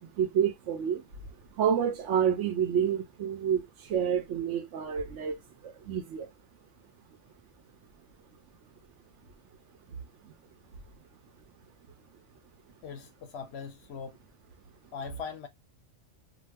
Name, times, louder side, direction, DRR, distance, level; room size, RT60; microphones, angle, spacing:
voice 1, 0.0-6.3 7.1-7.2 9.9-10.0 10.2-10.3, right 8 dB, 70° right, 0.9 m, -29 dB
voice 2, 12.8-14.2 14.9-15.5, left 6 dB, 65° left, 0.8 m, -40 dB
2.5 x 2.4 x 3.2 m
omnidirectional pair, 1.3 m